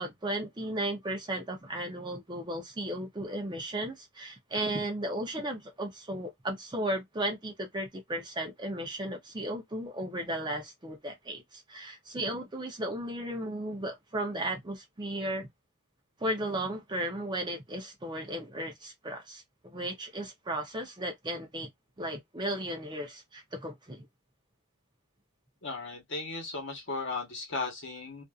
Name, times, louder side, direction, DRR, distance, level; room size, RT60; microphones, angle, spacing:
voice 1, 0.0-15.5 16.2-21.7 22.0-24.1, right 1 dB, 20° right, 0.6 m, -35 dB
voice 2, 25.6-28.2, left 3 dB, 55° left, 1.1 m, -36 dB
2.5 x 2.5 x 2.3 m
head